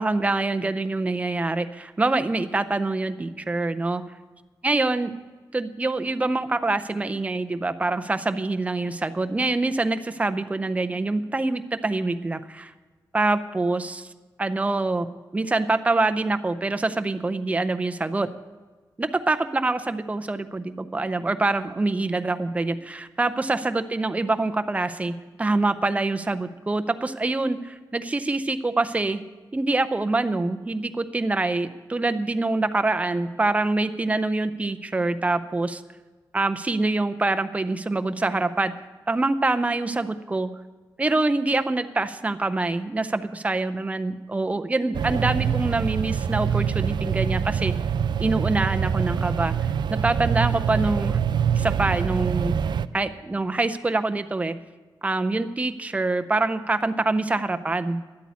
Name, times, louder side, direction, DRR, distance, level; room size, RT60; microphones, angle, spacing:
voice 1, 0.0-4.0 4.6-5.1 5.5-12.7 13.1-14.1 14.4-15.1 15.3-18.3 19.0-29.2 29.5-35.8 36.3-38.7 39.1-40.5 41.0-47.7 48.2-49.5 49.9-51.2 51.5-52.6 52.9-54.6 55.0-58.0, right 2 dB, 15° right, 9 dB, 0.5 m, -25 dB
sound 1, 44.9-52.9, right 7 dB, 70° right, 0.4 m, -25 dB
10.5 x 8.4 x 8.3 m, 1.3 s
wide cardioid pair, 145°, 8 cm